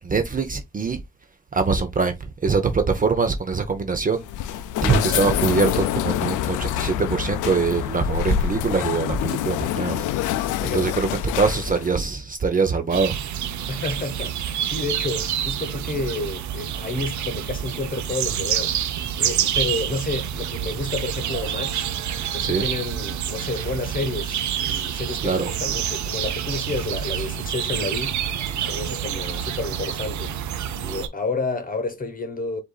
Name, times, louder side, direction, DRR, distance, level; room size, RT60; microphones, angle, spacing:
voice 1, 0.0-1.0 1.5-10.3 10.6-13.2 22.4-22.6 25.2-25.5 27.2-27.3, right 4 dB, 25° right, 0.7 m, -23 dB
sound 1, 4.1-12.0, left 12 dB, 85° left, 0.5 m, -26 dB
voice 2, 10.6-11.0 13.7-18.7 19.0-21.9 22.3-32.6, left 3 dB, 30° left, 1.3 m, -30 dB
sound 2, 12.9-31.1, right 9 dB, 70° right, 0.7 m, -28 dB
7.7 x 2.7 x 2.3 m
cardioid pair, 90°, 30 cm